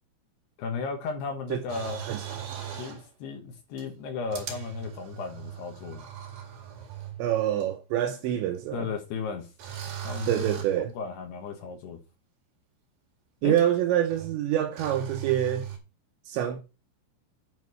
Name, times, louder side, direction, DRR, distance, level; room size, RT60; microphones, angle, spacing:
voice 1, 0.6-2.0 2.8-6.0 8.7-9.5 9.9-10.6 10.9-12.0 13.4-13.6, left 5 dB, 65° left, 3.1 m, -35 dB
sound 1, 1.7-3.1 3.8-3.9 4.3-7.3 7.6-7.7 9.6-10.9 13.6-13.7 14.1-14.4 14.8-15.8, right 10 dB, 55° right, 3.4 m, -38 dB
voice 2, 7.2-8.9 10.3-10.9 13.4-15.7 16.3-16.6, right 11 dB, 80° right, 2.7 m, -26 dB
9.7 x 4.3 x 6.2 m
omnidirectional pair, 5.8 m